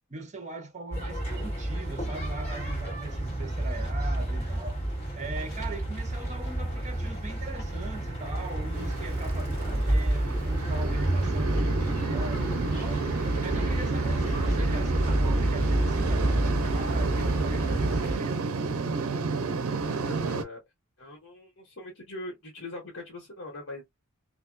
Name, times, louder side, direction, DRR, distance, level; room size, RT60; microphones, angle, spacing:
voice 1, 0.1-4.8 5.1-13.1 13.4-18.5, right 3 dB, 35° right, 0.7 m, -40 dB
sound 1, 0.9-18.2, right 1 dB, 30° left, 1.7 m, -29 dB
sound 2, 1.5-14.6, left 1 dB, 50° left, 1.1 m, -49 dB
sound 3, 8.7-20.4, right 4 dB, 75° right, 0.5 m, -31 dB
voice 2, 19.9-20.6 21.0-23.8, left 2 dB, 70° left, 1.3 m, -41 dB
2.5 x 2.3 x 2.4 m
head